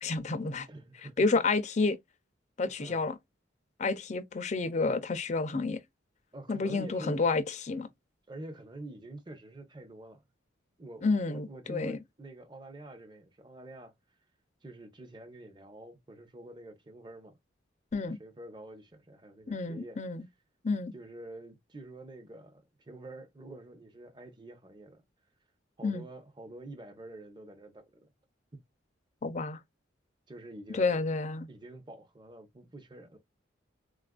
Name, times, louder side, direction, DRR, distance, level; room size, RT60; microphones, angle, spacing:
voice 1, 0.0-0.7 1.2-2.0 2.6-3.2 3.8-5.8 6.5-7.9 11.0-12.0 17.9-18.2 19.5-20.2 20.6-20.9 25.8-26.0 29.2-29.6 30.7-31.5, left 3 dB, 40° left, 0.5 m, -30 dB
voice 2, 0.7-1.4 2.8-3.0 6.3-7.2 8.3-10.2 10.8-13.9 14.6-17.4 18.0-20.0 20.9-25.0 25.8-28.1 30.3-31.0 31.5-33.2, right 1 dB, 25° right, 0.7 m, -47 dB
4.0 x 2.4 x 2.2 m
head